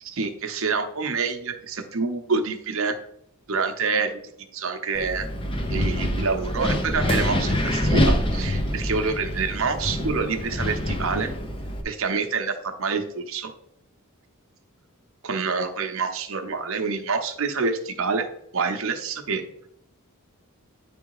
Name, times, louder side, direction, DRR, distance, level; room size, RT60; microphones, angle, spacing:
voice 1, 0.0-3.0 3.5-4.2 4.5-5.3 5.7-11.3 11.8-13.5 15.2-18.3 18.5-19.4, right 4 dB, 65° right, 6 dB, 0.8 m, -27 dB
Wind, 4.9-11.8, left 1 dB, 25° left, 0.7 m, -25 dB
8.8 x 3.5 x 4.8 m, 0.73 s
head